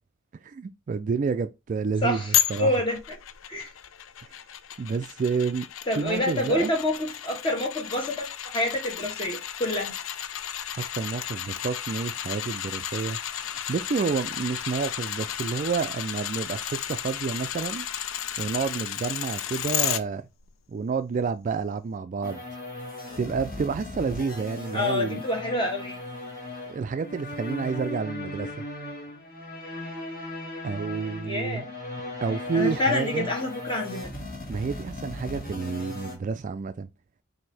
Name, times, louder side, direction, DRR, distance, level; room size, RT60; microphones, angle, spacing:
voice 1, 0.4-2.2 2.5-2.7 4.8-5.7 6.0-6.7 10.7-17.9 18.4-20.2 20.7-22.4 23.2-25.2 26.7-28.5 30.6-31.6 32.2-33.3 34.5-36.9, right 5 dB, 40° right, 0.3 m, -29 dB
voice 2, 2.0-3.0 3.5-3.7 5.9-8.3 8.5-9.9 24.7-26.0 31.2-31.7 32.5-34.1, left 1 dB, 25° left, 1.4 m, -27 dB
sound 1, 2.3-20.0 20.4-20.5, left 10 dB, 90° left, 0.4 m, -33 dB
sound 2, 22.2-36.1, left 1 dB, 45° left, 1.6 m, -37 dB
6.1 x 2.7 x 3.2 m
head